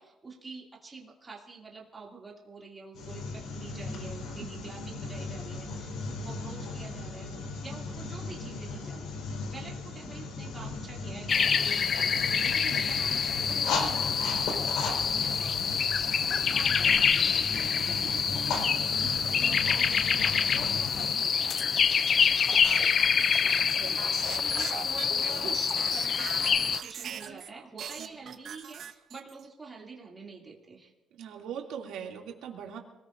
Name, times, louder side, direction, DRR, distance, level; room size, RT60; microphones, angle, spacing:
voice 1, 0.0-15.8 16.2-21.9 23.8-24.0 24.3-25.6 25.9-30.9, right 4 dB, 15° right, -3 dB, 2.6 m, -46 dB
sound 1, 2.9-21.1, left 3 dB, 80° left, 4.5 m, -37 dB
sound 2, 11.3-26.8, left 6 dB, 35° left, 0.4 m, -26 dB
sound 3, 22.5-27.5 27.8-29.4, right 8 dB, 50° right, 1.1 m, -40 dB
voice 2, 23.1-24.4 28.0-28.2 31.2-32.8, right 8 dB, 80° right, 0 dB, 2.6 m, -42 dB
26.5 x 19.0 x 2.6 m, 0.99 s
cardioid pair, 170°, 0 cm